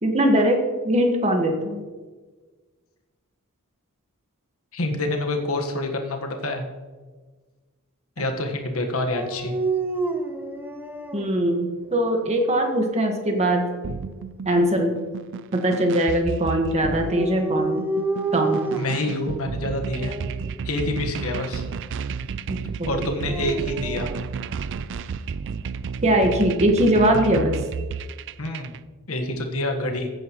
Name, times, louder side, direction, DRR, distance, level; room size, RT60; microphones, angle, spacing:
voice 1, 0.0-1.8 11.1-13.6 14.4-14.9 15.6-17.8 18.3-18.6 22.5-23.0 26.0-27.6, right 1 dB, 30° right, 3 dB, 1.6 m, -21 dB
voice 2, 4.7-6.7 8.2-9.6 18.8-20.2 20.6-21.6 22.9-24.1 28.4-28.8 29.1-30.1, left 1 dB, 70° left, 4 dB, 1.5 m, -27 dB
Dog, 9.1-11.3 11.9-12.7 16.8-19.1 19.9-20.4 22.9-24.2, right 3 dB, 10° right, 0.7 m, -29 dB
sound 1, 13.8-28.8, right 5 dB, 55° right, 0.4 m, -32 dB
14.5 x 9.7 x 3.1 m, 1.4 s
head